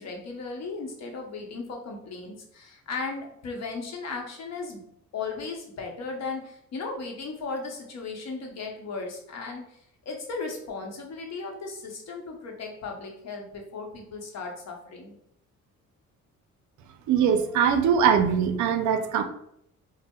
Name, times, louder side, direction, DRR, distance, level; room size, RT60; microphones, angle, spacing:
voice 1, 0.0-4.8 5.1-15.2, left 4 dB, 60° left, 2 dB, 0.8 m, -36 dB
voice 2, 17.1-19.2, right 7 dB, 70° right, 8 dB, 0.4 m, -22 dB
4.1 x 2.0 x 2.2 m, 0.74 s
cardioid pair, 90°, 30 cm